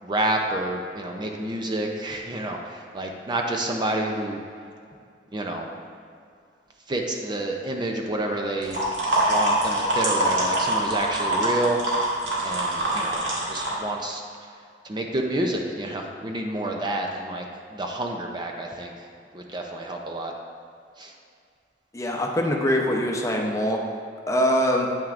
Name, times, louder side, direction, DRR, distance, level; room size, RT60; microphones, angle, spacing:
voice 1, 0.0-4.4 5.3-5.7 6.9-8.8 9.3-11.8 12.4-13.2 13.5-14.2 14.8-17.4 17.7-18.9 19.3-20.3 21.0-21.1, right 1 dB, 25° right, 2 dB, 0.5 m, -29 dB
sound 1, 8.6-13.7, right 1 dB, 80° right, 2.0 m, -24 dB
voice 2, 21.9-23.8 24.3-24.9, equal, 20° left, 0 dB, 0.7 m, -23 dB
9.0 x 8.8 x 2.5 m, 2.3 s
head